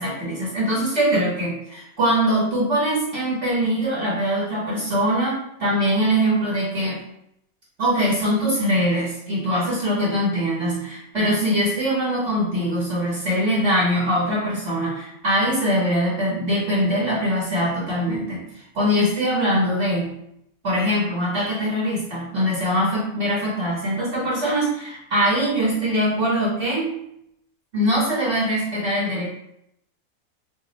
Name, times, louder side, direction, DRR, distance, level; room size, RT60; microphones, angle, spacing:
voice 1, 0.0-7.0 7.8-20.2 20.6-27.0 27.7-29.3, equal, 50° right, -7 dB, 1.3 m, -22 dB
2.6 x 2.5 x 4.0 m, 0.76 s
omnidirectional pair, 1.6 m